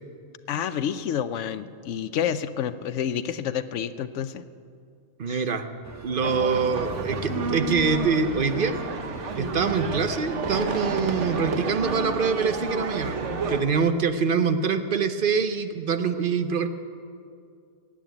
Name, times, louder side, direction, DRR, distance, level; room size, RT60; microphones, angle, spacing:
voice 1, 0.5-4.4 5.3-5.4, left 9 dB, 85° left, 13 dB, 1.0 m, -29 dB
voice 2, 5.2-5.7 6.0-8.8 9.4-16.7, right 5 dB, 50° right, 9 dB, 0.8 m, -25 dB
sound 1, 5.8-12.2, right 2 dB, 20° right, 0.6 m, -42 dB
sound 2, 6.2-13.6, right 4 dB, 80° right, 1.3 m, -30 dB
15.5 x 8.8 x 9.2 m, 2.3 s
omnidirectional pair, 1.2 m